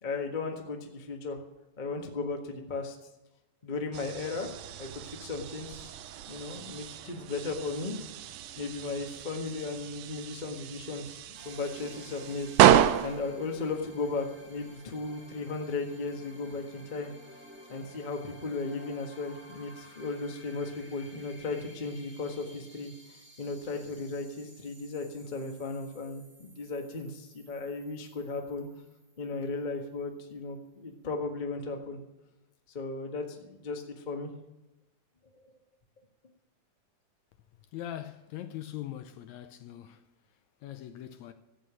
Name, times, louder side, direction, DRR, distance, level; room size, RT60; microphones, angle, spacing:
voice 1, 0.0-1.4 1.8-2.9 3.6-4.5 4.8-5.9 6.3-8.1 8.6-17.1 17.7-22.9 23.4-28.7 29.2-32.0 32.7-34.3, left 3 dB, 40° left, 0.6 m, -36 dB
sound 1, 3.9-14.8, right 12 dB, 75° right, 2.0 m, -30 dB
sound 2, 11.3-29.8, equal, 5° right, 0.8 m, -54 dB
voice 2, 37.5-41.3, left 12 dB, 75° left, 1.8 m, -42 dB
14.0 x 8.6 x 6.2 m
omnidirectional pair, 3.6 m